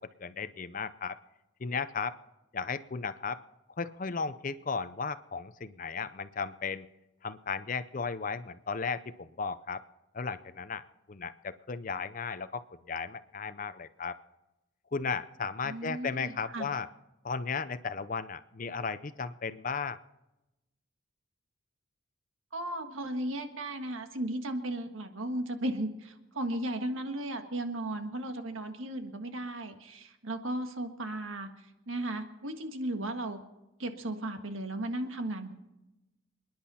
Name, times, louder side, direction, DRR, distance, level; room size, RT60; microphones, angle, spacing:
voice 1, 0.2-1.2 1.6-2.2 2.5-3.4 3.8-6.9 7.2-9.8 10.1-10.8 11.1-14.2 14.9-16.9 17.2-20.0, left 5 dB, 40° left, 14 dB, 0.6 m, -35 dB
voice 2, 15.6-16.7 22.5-31.5 31.9-33.4 33.8-35.5, right 1 dB, 80° right, 6 dB, 1.6 m, -35 dB
28.0 x 10.5 x 4.3 m, 0.98 s
head